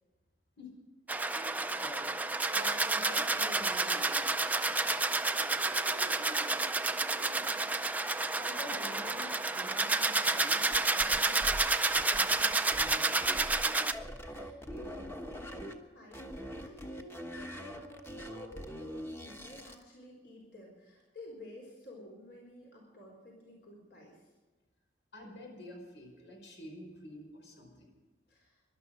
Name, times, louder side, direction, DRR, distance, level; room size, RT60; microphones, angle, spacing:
sound 1, 1.1-13.9, right 3 dB, 10° right, 0.5 m, -30 dB
voice 1, 1.3-4.3 8.3-11.4 12.1-13.2 25.1-27.9, left 1 dB, 85° left, 1 dB, 5.2 m, -48 dB
voice 2, 4.8-6.7 6.9-7.7 13.5-13.9 14.2-24.2 28.3-28.6, equal, 65° left, -1 dB, 4.3 m, -52 dB
sound 2, 10.7-13.7 13.9-15.7 16.1-19.8, equal, 15° left, 1.2 m, -43 dB
22.5 x 12.0 x 5.2 m, 1.3 s
head